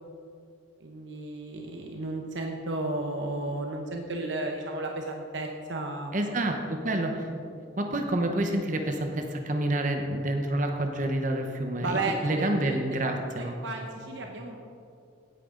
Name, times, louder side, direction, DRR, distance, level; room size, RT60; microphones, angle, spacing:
voice 1, 0.8-6.1 7.9-8.0 11.8-13.0 13.3-14.6, right 2 dB, 70° right, 2 dB, 1.0 m, -33 dB
voice 2, 6.1-7.3 7.8-13.5, right 1 dB, 40° right, 4 dB, 0.9 m, -28 dB
16.5 x 9.1 x 3.8 m, 2.4 s
head